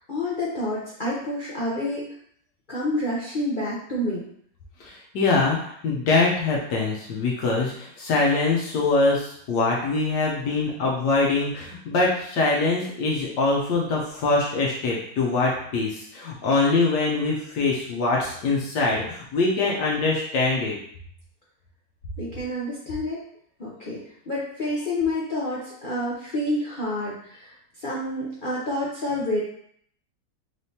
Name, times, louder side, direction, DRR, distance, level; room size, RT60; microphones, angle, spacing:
voice 1, 0.1-2.1 2.7-4.3 22.2-23.2 23.6-24.0 24.3-27.5 27.8-29.4, left 1 dB, 55° left, -7 dB, 0.5 m, -28 dB
voice 2, 4.8-20.7, left 3 dB, 75° left, -3 dB, 1.3 m, -23 dB
4.1 x 3.4 x 2.8 m, 0.64 s
omnidirectional pair, 1.9 m